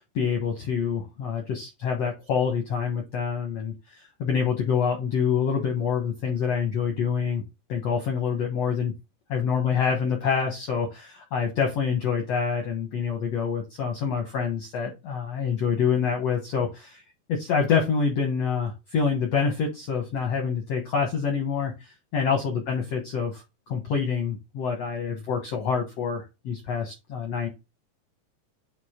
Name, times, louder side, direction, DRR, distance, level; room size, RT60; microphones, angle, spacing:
voice 1, 0.0-7.4 7.7-8.9 9.3-17.0 17.3-21.7 22.1-27.5, left 6 dB, 75° left, 3 dB, 1.5 m, -26 dB
8.3 x 3.7 x 3.6 m, 0.25 s
omnidirectional pair, 4.6 m